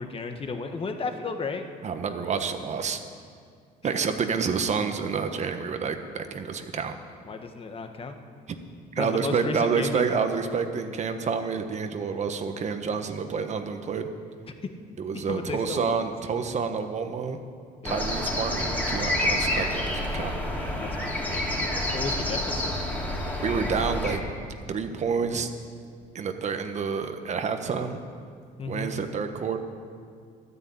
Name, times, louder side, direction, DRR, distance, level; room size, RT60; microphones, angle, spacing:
voice 1, 0.0-1.6 3.9-4.1 7.2-8.2 9.0-10.2 14.6-14.7 15.1-15.9 17.8-18.0 20.8-22.8 28.6-28.9, left 4 dB, 35° left, 6 dB, 1.3 m, -34 dB
voice 2, 1.8-3.0 3.8-7.0 8.9-14.1 15.0-17.4 17.8-20.4 23.4-24.2 24.7-25.5 26.1-28.0 28.7-29.6, right 5 dB, 45° right, 7 dB, 1.1 m, -28 dB
sound 1, 17.8-24.2, left 1 dB, 10° left, 2.7 m, -28 dB
12.5 x 9.5 x 8.6 m, 2.2 s
cardioid pair, 110°, 17 cm